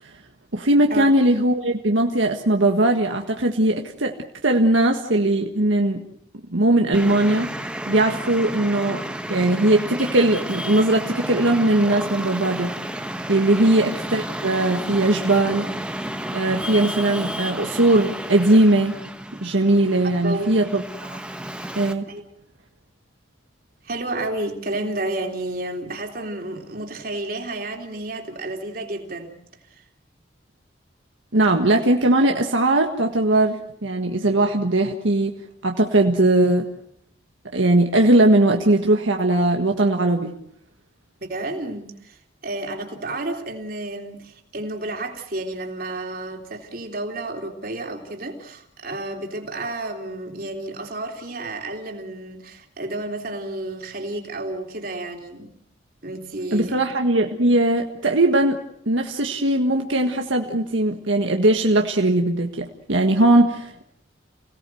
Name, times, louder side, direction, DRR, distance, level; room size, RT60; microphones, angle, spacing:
voice 1, 0.5-4.2 4.4-6.0 6.5-7.5 7.9-9.0 9.3-12.7 13.3-15.7 16.3-18.9 19.4-21.2 21.8-22.1 31.3-35.3 35.6-36.7 37.5-40.3 56.5-58.6 58.9-63.8, right 1 dB, 80° right, 3 dB, 1.6 m, -19 dB
Traffic noise roadway noise, 6.9-21.9, right 1 dB, 5° right, 1.2 m, -32 dB
voice 2, 20.2-20.7 22.1-22.2 23.8-29.4 29.7-29.8 41.2-55.5 56.0-57.0, right 2 dB, 50° right, 3 dB, 3.5 m, -31 dB
29.0 x 18.0 x 7.8 m, 0.72 s
head